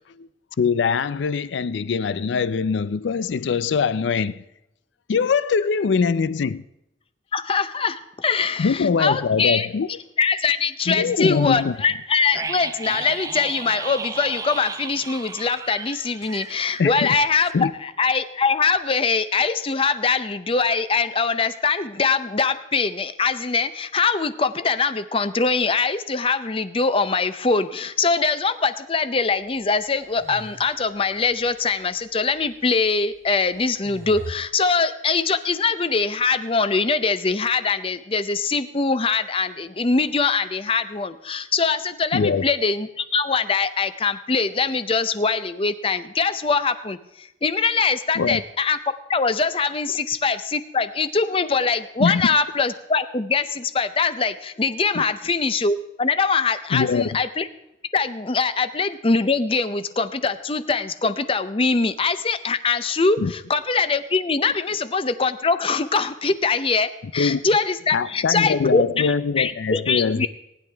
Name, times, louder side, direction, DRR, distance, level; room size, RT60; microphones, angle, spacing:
voice 1, 0.6-4.4 5.1-6.6 8.6-9.9 10.9-11.8 16.8-17.1 17.5-17.7 42.1-42.4 48.2-48.4 52.0-52.3 54.9-55.0 56.7-57.1 63.2-63.3 67.2-67.4 67.9-70.3, left 5 dB, 85° left, 0.4 m, -22 dB
voice 2, 7.3-9.7 10.2-48.8 49.1-57.5 57.9-70.3, left 4 dB, 30° left, 0.6 m, -22 dB
sound 1, 12.3-17.2 17.4-17.5, right 4 dB, 20° right, 0.5 m, -34 dB
sound 2, 29.7-31.6 32.4-32.5 33.3-34.4, equal, 65° right, 1.5 m, -41 dB
19.0 x 10.5 x 3.4 m
head